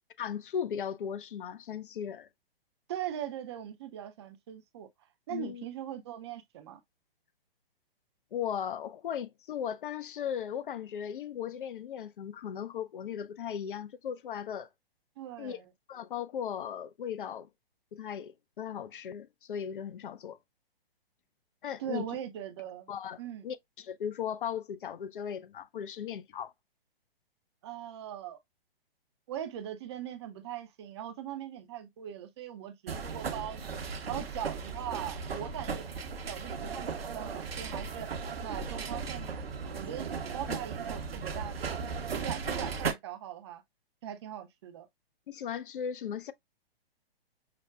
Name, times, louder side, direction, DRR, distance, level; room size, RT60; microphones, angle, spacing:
voice 1, 0.2-2.3 5.3-5.6 8.3-14.7 15.4-15.6 15.9-17.5 17.9-20.4 21.6-22.0 22.9-26.5 40.5-40.6 45.3-46.3, left 8 dB, 60° left, 0.4 m, -37 dB
voice 2, 2.9-4.9 5.3-6.8 15.2-15.7 21.8-22.9 23.2-23.5 27.6-28.4 29.3-33.8 34.1-35.9 36.3-38.1 38.4-39.3 39.6-40.1 40.3-43.6 44.0-44.9, right 10 dB, 30° right, 0.4 m, -40 dB
sound 1, 32.9-42.9, right 5 dB, 75° right, 0.7 m, -36 dB
5.8 x 2.1 x 2.2 m
figure-of-eight pair, 120°, 30 cm